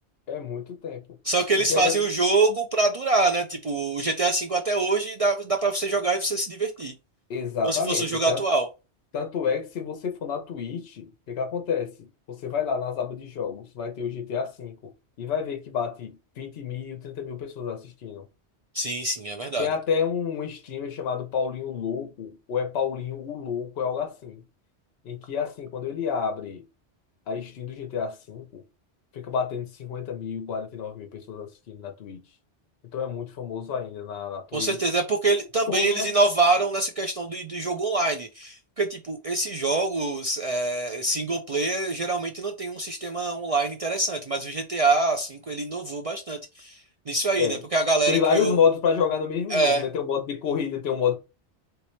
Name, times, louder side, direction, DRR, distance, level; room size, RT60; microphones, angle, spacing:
voice 1, 0.3-1.0 1.7-2.0 7.3-8.4 9.1-14.7 15.2-18.2 19.6-24.4 25.0-26.6 27.3-28.6 29.1-32.2 32.9-34.8 35.7-36.1 47.4-47.6 48.1-51.2, left 6 dB, 65° left, 1.0 m, -29 dB
voice 2, 1.2-6.9 7.6-8.7 18.7-19.7 34.5-46.8 47.1-48.6 49.5-49.8, right 3 dB, 60° right, 0.4 m, -25 dB
3.1 x 2.9 x 3.1 m
omnidirectional pair, 1.2 m